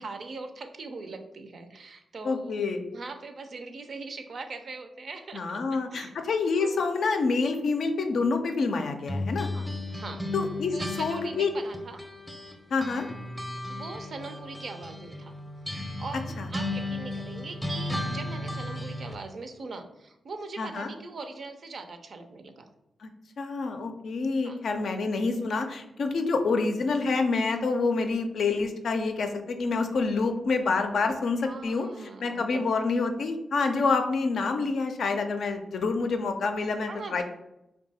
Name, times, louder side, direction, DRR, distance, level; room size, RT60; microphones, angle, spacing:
voice 1, 0.0-2.6 2.9-5.6 5.9-6.1 6.6-6.9 9.5-10.2 10.7-12.0 13.7-15.4 16.0-22.7 24.4-24.6 31.4-32.6 36.9-37.2, right 3 dB, 60° right, 7 dB, 0.4 m, -41 dB
voice 2, 2.2-2.9 5.3-9.5 10.3-11.5 12.7-13.1 16.4-16.5 20.6-20.9 23.0-23.1 23.4-31.9 32.2-37.2, left 4 dB, 70° left, 5 dB, 0.4 m, -27 dB
sound 1, 9.1-12.5 12.8-19.2, left 1 dB, 5° left, 0.5 m, -35 dB
2.7 x 2.2 x 4.0 m, 0.86 s
cardioid pair, 55°, 0 cm